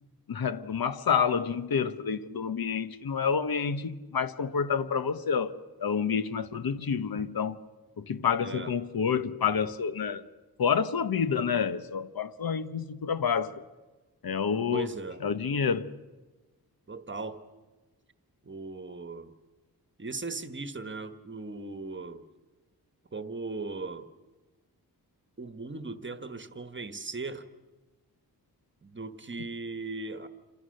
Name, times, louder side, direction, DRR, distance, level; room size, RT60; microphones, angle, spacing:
voice 1, 0.3-7.6 8.0-10.2 10.6-13.5 14.2-14.9 15.2-15.9, left 6 dB, 70° left, 1.1 m, -28 dB
voice 2, 8.4-8.7 14.7-15.2 16.9-17.4 18.4-19.3 20.0-22.3 23.1-24.1 25.4-27.5 28.8-30.3, right 3 dB, 30° right, 1.3 m, -38 dB
28.5 x 26.5 x 6.6 m
wide cardioid pair, 135°, 37 cm